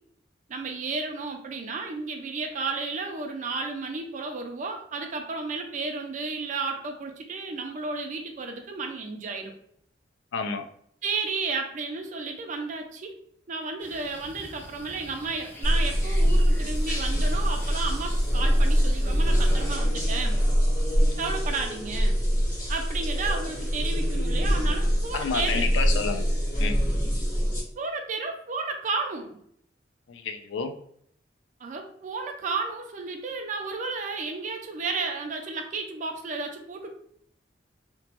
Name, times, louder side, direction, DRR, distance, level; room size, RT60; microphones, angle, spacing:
voice 1, 0.5-9.5 11.0-13.1 13.5-20.4 21.2-22.2 22.7-25.7 27.8-29.4 31.6-36.9, right 4 dB, 45° right, 4 dB, 0.4 m, -32 dB
voice 2, 10.3-10.6 25.1-26.3 26.6-26.8 30.1-30.7, left 5 dB, 80° left, 7 dB, 0.3 m, -29 dB
sound 1, 13.8-19.7, left 1 dB, 10° left, 0.5 m, -47 dB
sound 2, 15.6-27.6, equal, 45° left, 0.9 m, -24 dB
2.9 x 2.2 x 2.8 m, 0.67 s
head